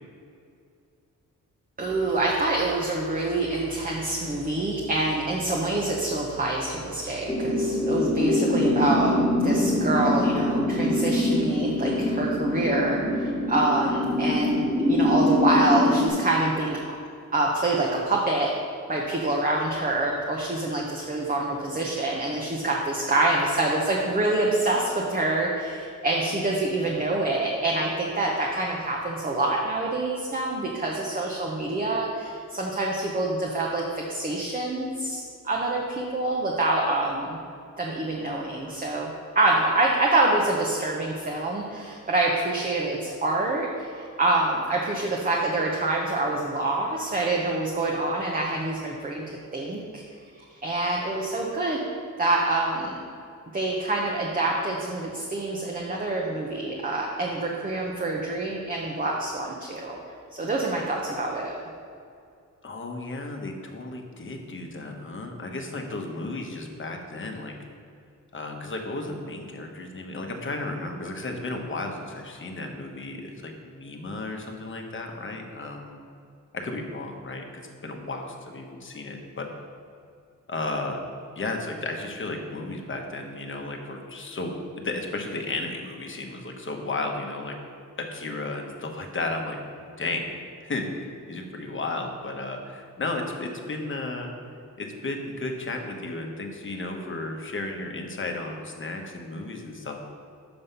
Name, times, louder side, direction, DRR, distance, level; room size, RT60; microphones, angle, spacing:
voice 1, 1.8-9.1 9.4-16.8 17.3-18.5 18.9-37.4 37.8-39.1 39.3-50.0 50.6-51.8 52.2-53.0 53.5-60.0 60.3-61.5, right 2 dB, 25° right, -2 dB, 0.8 m, -26 dB
sound 1, 7.3-16.1, left 1 dB, 5° left, 1.6 m, -24 dB
voice 2, 62.6-67.5 68.3-76.0 76.5-79.5 80.5-81.0 81.4-87.5 88.0-89.6 90.0-90.3 90.6-94.3 94.8-100.0, left 2 dB, 40° left, 3 dB, 0.9 m, -34 dB
6.9 x 5.4 x 5.5 m, 2.4 s
wide cardioid pair, 150°, 32 cm